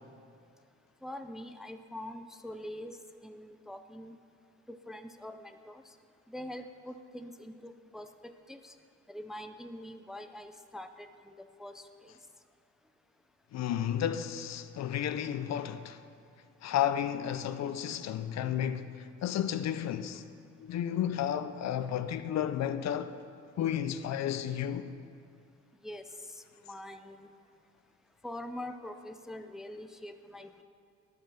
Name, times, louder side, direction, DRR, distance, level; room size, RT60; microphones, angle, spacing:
voice 1, 1.0-4.2 4.7-5.9 6.3-8.8 9.1-12.2 25.8-27.3 28.2-30.6, left 1 dB, ahead, 0.4 m, -44 dB
voice 2, 13.5-16.0 16.6-19.0 19.2-20.2 20.6-23.1 23.6-24.9, left 10 dB, 60° left, 0.5 m, -32 dB
10.5 x 7.3 x 5.6 m
cardioid pair, 90°, 30 cm